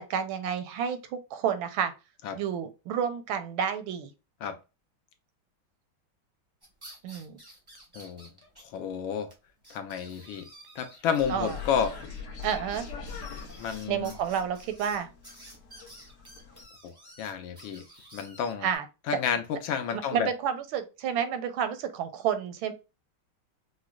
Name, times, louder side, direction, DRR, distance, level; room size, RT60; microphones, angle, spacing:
voice 1, 0.0-1.9 2.4-4.1 7.0-7.4 11.3-11.6 12.4-12.9 13.9-15.1 18.6-18.8 19.9-22.7, right 8 dB, 80° right, 1.4 m, -30 dB
sound 1, 6.6-8.6 8.9-9.0 9.3-9.4 9.6-18.8, right 1 dB, 20° right, 0.6 m, -52 dB
voice 2, 7.9-8.3 8.7-9.3 9.7-10.5 10.7-12.0 13.6-14.1 16.8-16.9 17.2-17.8 18.1-18.7 19.1-20.3, left 7 dB, 75° left, 1.4 m, -30 dB
sound 2, 11.2-16.6, left 5 dB, 60° left, 0.8 m, -42 dB
4.8 x 2.1 x 2.3 m
omnidirectional pair, 2.3 m